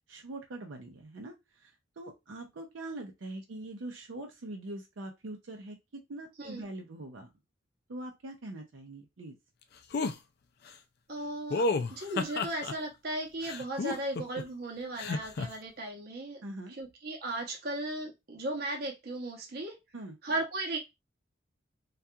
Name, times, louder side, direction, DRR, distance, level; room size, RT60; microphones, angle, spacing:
voice 1, 0.1-1.3 1.6-1.7 2.0-7.3 7.9-9.3 16.4-16.8 19.9-20.2, right 2 dB, 80° right, 0.5 m, -43 dB
sound 1, 9.9-10.2 11.5-12.7 13.4-14.4 15.0-15.5, left 3 dB, 55° left, 0.3 m, -31 dB
voice 2, 11.1-16.4 16.7-19.8 20.2-20.8, right 2 dB, 55° right, 0.7 m, -36 dB
2.7 x 2.3 x 2.3 m
head